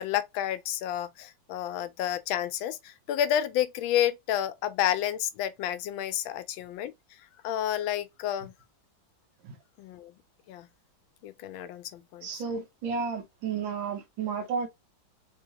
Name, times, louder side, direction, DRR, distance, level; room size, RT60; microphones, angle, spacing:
voice 1, 0.0-6.9 7.4-8.5 9.8-10.1 10.5-10.7 11.2-12.4, left 11 dB, 85° left, 1.3 m, -30 dB
voice 2, 12.2-14.7, right 5 dB, 80° right, 1.7 m, -32 dB
3.6 x 2.9 x 2.8 m
omnidirectional pair, 2.1 m